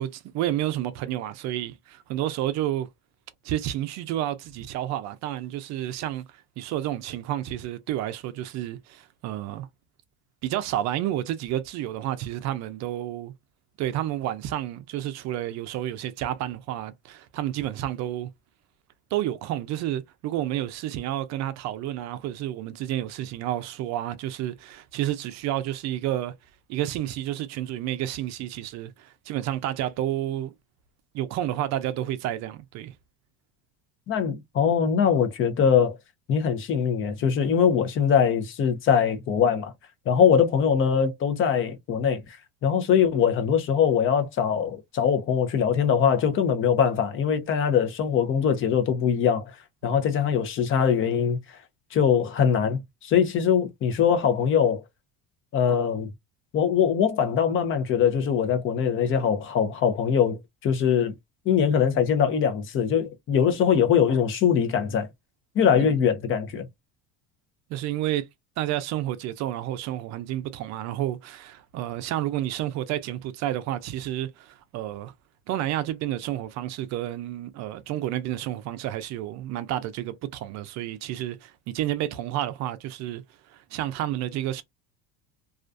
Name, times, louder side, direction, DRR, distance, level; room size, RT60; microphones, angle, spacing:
voice 1, 0.0-2.9 3.4-9.7 10.4-13.3 13.8-18.3 19.1-26.3 26.7-30.5 31.1-32.9 49.8-50.0 65.8-65.9 67.7-68.3 68.6-75.1 75.5-83.2 83.5-84.6, right 13 dB, 50° right, 0.5 m, -30 dB
voice 2, 34.1-36.0 36.3-39.7 40.1-42.2 42.6-49.4 49.8-51.4 51.9-54.8 55.5-56.1 56.5-61.1 61.5-65.1 65.5-66.6, left 7 dB, 35° left, 0.6 m, -22 dB
2.4 x 2.2 x 2.5 m
cardioid pair, 135°, 35 cm